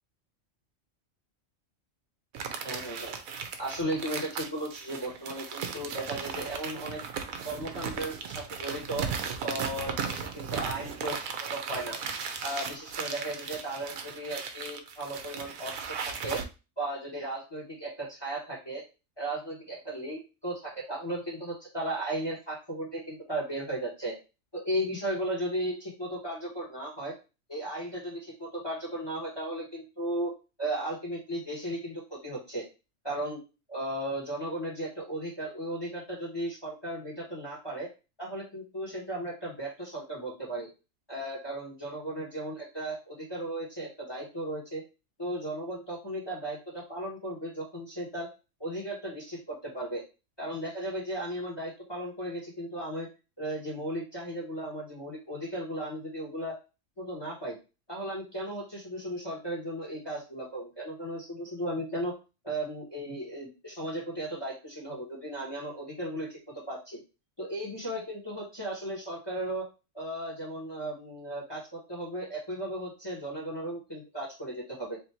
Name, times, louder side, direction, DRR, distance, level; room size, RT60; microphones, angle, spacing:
sound 1, 2.3-16.4, right 6 dB, 85° right, 1.1 m, -36 dB
voice 1, 2.6-3.1 3.6-7.0 7.4-9.1 9.4-12.0 12.4-16.4 16.8-18.8 19.2-24.2 24.5-27.1 27.5-30.3 30.6-32.7 33.0-33.4 33.7-37.9 38.2-40.7 41.1-44.8 45.2-48.3 48.6-50.0 50.4-53.1 53.4-56.6 57.0-57.6 57.9-62.1 62.4-67.0 67.4-69.6 69.9-75.0, right 1 dB, 20° left, -4 dB, 1.3 m, -35 dB
3.4 x 2.7 x 4.3 m, 0.30 s
omnidirectional pair, 1.4 m